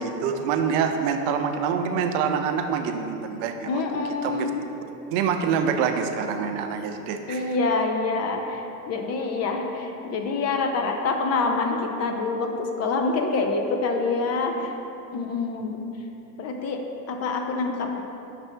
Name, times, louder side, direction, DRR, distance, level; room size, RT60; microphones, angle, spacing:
voice 1, 0.0-4.5 5.1-7.6 15.6-15.7, right 6 dB, 70° right, 6 dB, 0.6 m, -26 dB
voice 2, 3.7-4.6 7.3-14.7 15.1-15.8 16.4-16.8 17.1-18.0, left 3 dB, 35° left, 3 dB, 0.5 m, -26 dB
5.8 x 3.3 x 5.8 m, 3.0 s
supercardioid pair, 130°, 44 cm